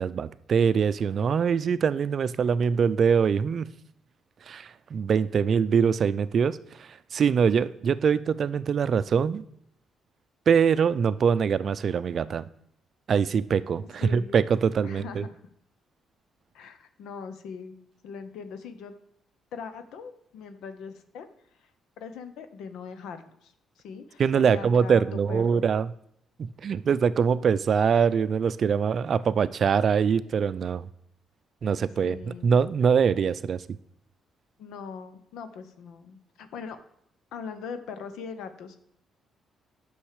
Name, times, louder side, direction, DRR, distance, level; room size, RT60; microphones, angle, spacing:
voice 1, 0.0-3.7 4.5-9.4 10.5-12.5 13.1-15.2 24.2-25.9 26.4-30.9 31.6-33.6, right 6 dB, 55° right, 15 dB, 0.4 m, -23 dB
voice 2, 14.0-14.4 14.8-15.4 16.5-17.8 18.0-18.9 19.5-21.3 21.6-21.7 22.0-25.7 32.0-32.6 34.6-36.8 37.3-38.8, left 6 dB, 85° left, 10 dB, 0.8 m, -41 dB
8.7 x 6.3 x 4.9 m, 0.71 s
cardioid pair, 90°, 0 cm